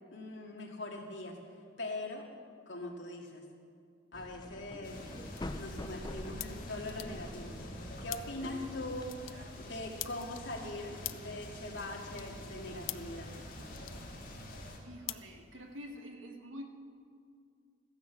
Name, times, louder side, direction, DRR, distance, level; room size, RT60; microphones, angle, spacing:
voice 1, 0.1-1.4 1.8-2.3 2.7-3.4 4.1-5.0 5.6-7.6 8.0-13.3, left 2 dB, 65° left, 0 dB, 2.1 m, -42 dB
sound 1, 4.1-9.1, left 1 dB, 20° left, 0.6 m, -46 dB
sound 2, 4.6-16.1, left 16 dB, 85° left, 0.5 m, -49 dB
sound 3, 4.8-14.8, left 1 dB, 45° left, 2.5 m, -46 dB
voice 2, 9.3-9.6 14.8-16.7, equal, 85° right, 3 dB, 1.7 m, -47 dB
15.0 x 10.5 x 7.3 m, 2.3 s
head